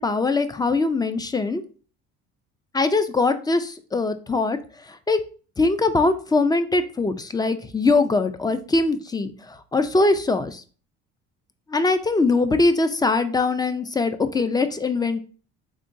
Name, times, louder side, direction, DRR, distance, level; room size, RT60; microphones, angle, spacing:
voice 1, 0.0-1.6 2.7-4.6 4.9-5.2 5.6-10.6 11.7-15.2, left 3 dB, 15° left, 11 dB, 0.3 m, -22 dB
3.6 x 2.9 x 2.6 m, 0.38 s
supercardioid pair, 85°, 30 cm